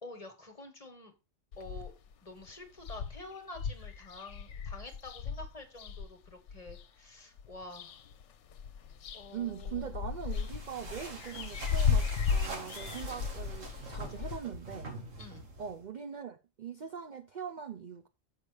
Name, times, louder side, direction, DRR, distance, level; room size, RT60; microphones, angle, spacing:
voice 1, 0.0-1.1 1.6-1.9 2.2-8.0 9.1-9.9 15.2-15.5, left 2 dB, 30° left, 1.4 m, -48 dB
sound 1, 1.5-2.1 2.5-2.6 2.8-6.8 7.4-8.2 8.5-14.4, left 6 dB, 70° left, 1.0 m, -35 dB
voice 2, 9.3-14.9 15.6-18.1, right 7 dB, 50° right, 0.6 m, -41 dB
sound 2, 10.3-15.9, right 2 dB, 85° right, 2.1 m, -45 dB
6.9 x 5.8 x 4.8 m
omnidirectional pair, 1.3 m